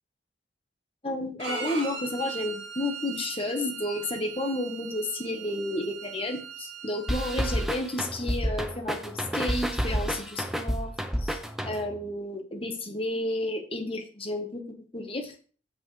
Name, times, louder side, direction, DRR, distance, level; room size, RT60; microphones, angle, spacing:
voice 1, 1.0-10.9 11.2-11.4 11.6-15.3, left 1 dB, 30° left, 3 dB, 1.3 m, -32 dB
Bowed string instrument, 1.4-7.7, right 5 dB, 60° right, 2.5 m, -39 dB
sound 1, 7.1-12.0, equal, ahead, 0.6 m, -30 dB
8.3 x 7.5 x 3.3 m, 0.40 s
head